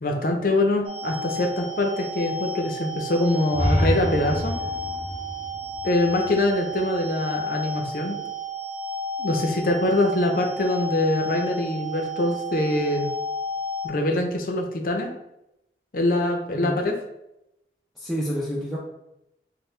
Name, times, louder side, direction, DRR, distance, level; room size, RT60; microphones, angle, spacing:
voice 1, 0.0-4.6 5.8-8.2 9.2-13.1 13.8-15.1 15.9-16.9, left 1 dB, 50° left, 3 dB, 0.5 m, -24 dB
sound 1, 0.8-13.9, equal, 75° right, 0.7 m, -32 dB
sound 2, 3.5-7.3, equal, 30° right, 1.3 m, -28 dB
voice 2, 18.0-18.8, equal, ahead, -6 dB, 0.4 m, -28 dB
4.3 x 2.1 x 3.2 m, 0.86 s
head